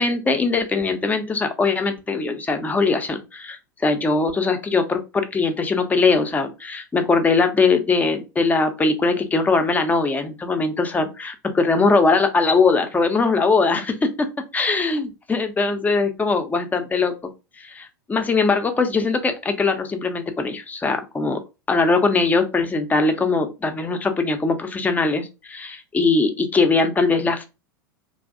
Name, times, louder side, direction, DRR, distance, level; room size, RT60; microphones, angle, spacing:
voice 1, 0.0-14.1 14.5-17.1 17.6-21.4 21.7-27.4, left 4 dB, 15° left, 7 dB, 0.5 m, -21 dB
2.5 x 2.0 x 2.4 m, 0.27 s
figure-of-eight pair, 85°, 11 cm